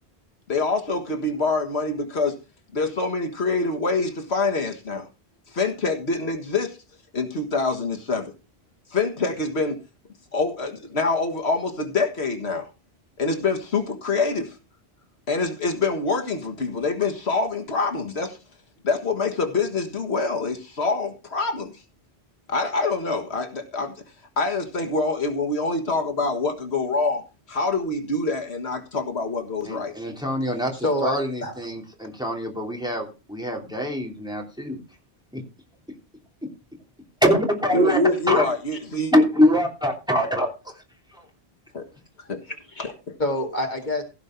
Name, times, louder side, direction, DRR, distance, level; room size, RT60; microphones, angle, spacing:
voice 1, 0.5-2.4 2.7-5.1 5.5-6.8 7.1-8.3 8.9-9.8 10.3-12.7 13.2-14.6 15.3-18.4 18.8-21.8 22.5-23.9 24.4-27.2 27.5-29.9 37.7-39.1 41.7-41.9 42.3-42.4 43.1-43.2, left 3 dB, 80° left, 2.0 m, -25 dB
voice 2, 29.6-30.7 31.0-34.8 35.3-35.4 37.2-38.4 39.1-40.5, equal, 5° right, 3.0 m, -23 dB
voice 3, 30.5-31.5 42.7-42.9 43.2-44.0, left 1 dB, 45° left, 2.4 m, -27 dB
16.0 x 5.4 x 5.9 m
omnidirectional pair, 1.1 m